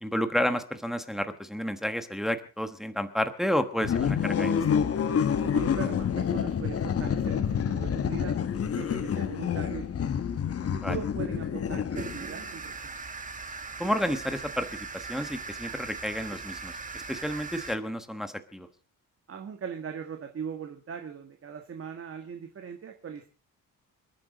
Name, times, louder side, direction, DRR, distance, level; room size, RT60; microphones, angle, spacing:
voice 1, 0.0-4.5 10.8-11.0 13.8-18.7, equal, ahead, 9 dB, 1.2 m, -31 dB
sound 1, 3.8-12.4, left 7 dB, 45° left, 1.1 m, -28 dB
voice 2, 5.4-8.4 8.7-10.2 10.6-13.0 19.3-23.3, right 7 dB, 40° right, 5 dB, 1.7 m, -40 dB
sound 2, 11.9-17.8, right 4 dB, 25° right, 1.6 m, -39 dB
28.5 x 10.5 x 3.9 m, 0.35 s
wide cardioid pair, 160°, 34 cm